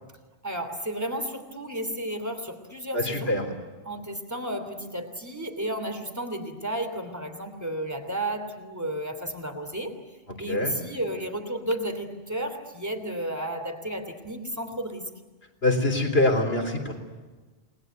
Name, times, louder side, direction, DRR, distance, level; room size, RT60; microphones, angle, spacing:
voice 1, 0.4-3.3 3.8-10.0 10.4-15.1, right 1 dB, 15° right, 7 dB, 3.0 m, -32 dB
voice 2, 2.9-3.5 10.5-10.8 15.6-17.0, left 2 dB, 70° left, 5 dB, 4.0 m, -24 dB
29.5 x 20.5 x 9.4 m, 1.3 s
omnidirectional pair, 1.1 m